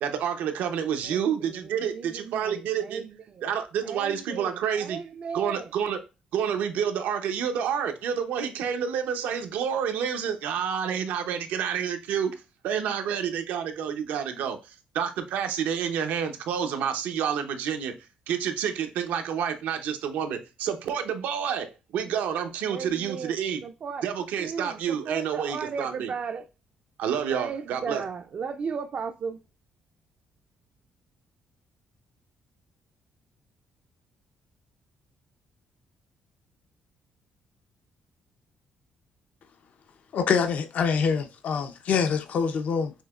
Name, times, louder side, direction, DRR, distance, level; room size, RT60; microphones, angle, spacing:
voice 1, 0.0-3.0 3.4-5.0 5.3-6.0 6.3-12.3 12.6-17.9 18.3-21.7 21.9-23.6 24.0-26.1 27.0-28.0, right 8 dB, 85° right, 0.7 m, -29 dB
voice 2, 1.0-3.5 3.8-5.7 22.7-23.3 23.6-24.0 24.4-26.5 27.3-29.4, right 6 dB, 50° right, 0.4 m, -36 dB
voice 3, 40.1-42.9, left 6 dB, 65° left, 0.6 m, -25 dB
6.3 x 2.9 x 2.3 m
cardioid pair, 95°, 3 cm